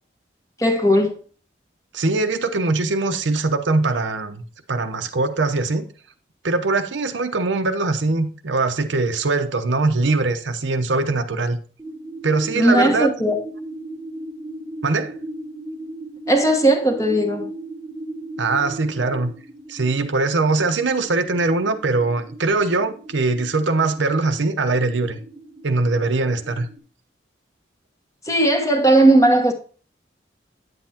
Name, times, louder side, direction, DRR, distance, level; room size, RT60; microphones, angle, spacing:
voice 1, 0.6-1.2 12.5-13.4 16.3-17.5 28.2-29.5, right 1 dB, 15° left, 1.2 m, -17 dB
voice 2, 1.9-4.4 4.7-5.8 6.4-11.6 12.2-13.1 14.8-15.1 18.4-19.3 19.7-25.2 25.6-26.7, right 3 dB, 85° right, 0.9 m, -21 dB
sound 1, 11.8-26.8, right 1 dB, 10° right, 1.2 m, -37 dB
9.6 x 7.8 x 2.8 m
head